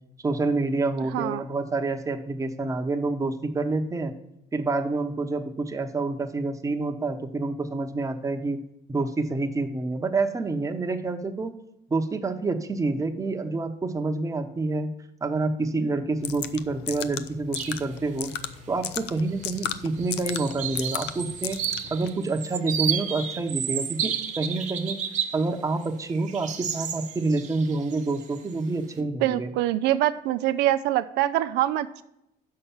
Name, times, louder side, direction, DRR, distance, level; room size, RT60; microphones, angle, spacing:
voice 1, 0.2-4.1 4.5-8.6 8.9-11.6 11.9-14.9 15.2-18.3 18.7-21.6 21.9-25.0 25.3-29.5, right 3 dB, 20° right, 5 dB, 0.9 m, -28 dB
sound 1, 16.2-22.1, left 10 dB, 85° left, 0.5 m, -35 dB
sound 2, 17.6-17.8 18.2-18.3 19.3-19.7 20.0-25.4 25.8-28.5, right 8 dB, 45° right, 1.0 m, -32 dB
voice 2, 29.2-32.0, right 14 dB, 90° right, 11 dB, 0.4 m, -24 dB
6.5 x 5.7 x 7.1 m, 0.83 s
cardioid pair, 110°, 17 cm